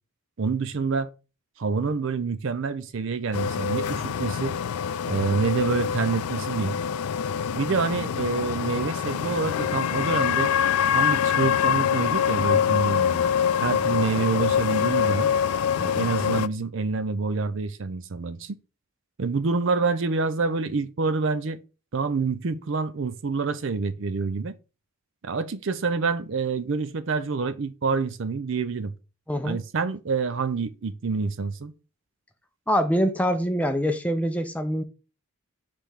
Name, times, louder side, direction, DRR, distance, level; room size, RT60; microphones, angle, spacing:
voice 1, 0.4-1.1 1.6-4.6 5.1-6.8 7.5-10.5 10.9-13.2 13.6-15.3 15.8-18.6 19.2-21.6 21.9-24.5 25.2-28.9 29.4-31.7, right 4 dB, 60° right, 0.5 m, -27 dB
sound 1, 3.3-16.5, left 8 dB, 80° left, 0.4 m, -25 dB
voice 2, 29.3-29.6 32.7-34.8, equal, 5° left, 0.5 m, -24 dB
5.1 x 3.4 x 5.6 m
head